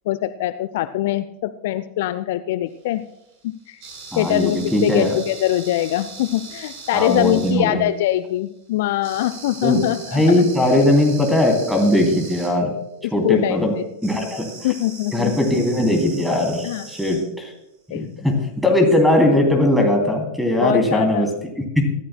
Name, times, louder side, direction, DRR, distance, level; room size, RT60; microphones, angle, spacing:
voice 1, 0.1-3.0 3.4-3.8 4.2-10.2 13.0-13.8 14.6-15.3 16.6-16.8 17.9-18.1 20.6-21.2, left 14 dB, 55° left, 13 dB, 0.4 m, -23 dB
sound 1, 2.7-7.9 9.0-12.5 14.0-17.3 18.8-19.0, right 4 dB, 45° right, 4.5 m, -39 dB
voice 2, 4.1-5.2 6.9-7.8 9.6-9.8 10.1-12.7 13.1-13.7 14.0-14.5 15.1-17.5 17.9-21.3, left 1 dB, ahead, 3 dB, 2.9 m, -19 dB
24.0 x 13.0 x 2.2 m, 0.86 s
figure-of-eight pair, 90°, 0 cm